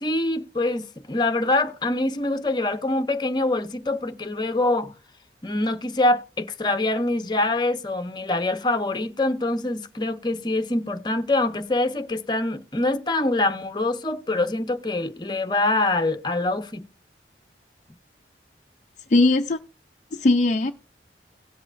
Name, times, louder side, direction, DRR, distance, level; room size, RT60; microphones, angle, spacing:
voice 1, 0.0-4.9 5.4-16.8, left 2 dB, 25° left, 0.8 m, -24 dB
voice 2, 19.1-19.6 20.1-20.7, left 2 dB, 45° left, 0.5 m, -19 dB
17.5 x 7.8 x 2.5 m
head